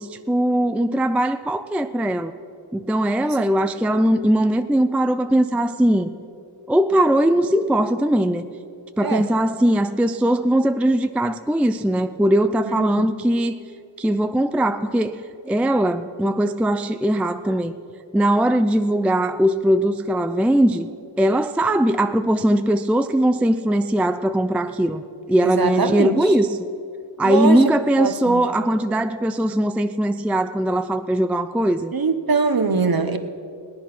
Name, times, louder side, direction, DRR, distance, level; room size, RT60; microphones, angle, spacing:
voice 1, 0.0-2.3 2.7-6.1 6.7-8.5 9.0-13.6 14.0-15.2 15.4-17.7 18.1-20.9 21.2-25.0 25.3-26.5 27.2-31.9, right 1 dB, 5° right, 9 dB, 0.4 m, -20 dB
voice 2, 12.8-13.1 25.4-26.2 27.2-27.6 28.0-28.5 31.9-33.2, right 4 dB, 50° right, 8 dB, 1.0 m, -22 dB
17.5 x 10.5 x 6.0 m, 2.4 s
wide cardioid pair, 85°, 47 cm